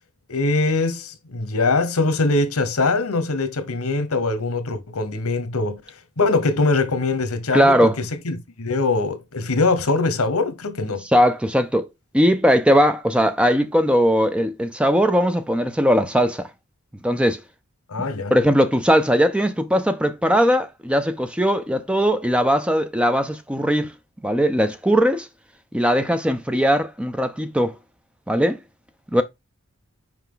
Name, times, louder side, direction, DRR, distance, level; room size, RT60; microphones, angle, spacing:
voice 1, 0.3-5.8 6.2-11.0 17.9-18.3, left 3 dB, 80° left, 1.1 m, -22 dB
voice 2, 7.5-8.0 11.1-11.9 12.1-16.5 17.0-17.4 18.3-23.9 24.2-25.3 25.7-27.8 28.3-28.6 29.1-29.2, equal, 5° right, 0.4 m, -19 dB
5.7 x 4.9 x 3.8 m
head